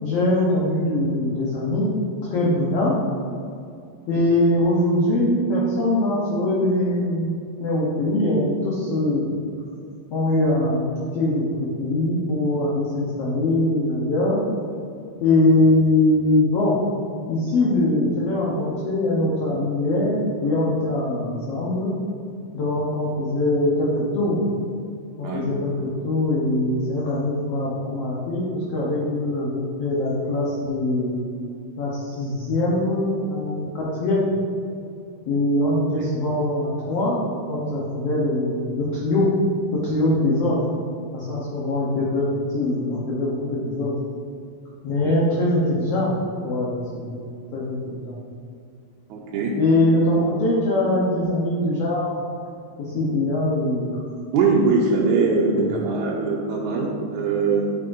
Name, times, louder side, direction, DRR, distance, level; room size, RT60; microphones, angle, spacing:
voice 1, 0.0-1.9 2.2-3.0 4.1-7.3 7.6-9.4 10.1-10.9 11.1-14.4 15.2-16.8 17.3-21.9 22.5-24.4 25.2-31.1 31.8-34.3 35.3-37.2 37.5-39.3 39.7-40.6 41.1-42.3 42.5-43.9 44.8-46.1 46.4-46.8 47.1-47.2 47.5-48.1 49.6-52.2 52.8-54.0 55.5-55.7, left 1 dB, 65° left, -5 dB, 1.8 m, -22 dB
voice 2, 49.1-49.5 54.3-57.6, right 4 dB, 80° right, -3 dB, 2.0 m, -21 dB
9.3 x 6.1 x 2.6 m, 2.4 s
omnidirectional pair, 3.6 m